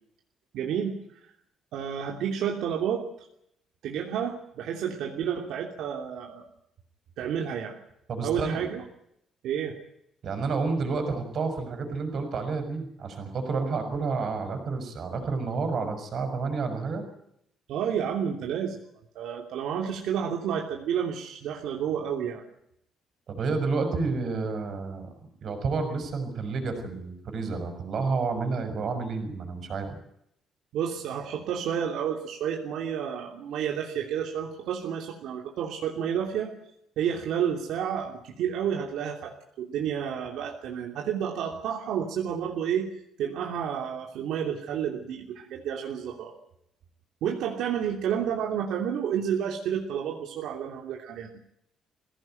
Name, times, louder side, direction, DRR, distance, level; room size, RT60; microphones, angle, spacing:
voice 1, 0.5-1.0 1.2-1.3 1.7-3.0 3.8-6.4 7.2-7.8 8.2-8.8 9.4-9.7 17.7-18.8 19.1-22.4 30.7-36.5 37.0-42.9 43.2-46.3 47.2-51.3, right 8 dB, 75° right, 1 dB, 3.0 m, -30 dB
voice 2, 8.1-8.7 10.2-17.0 23.3-25.1 25.4-29.9, right 4 dB, 45° right, 7 dB, 6.1 m, -30 dB
21.5 x 17.0 x 9.2 m, 0.75 s
cardioid pair, 170°, 0 cm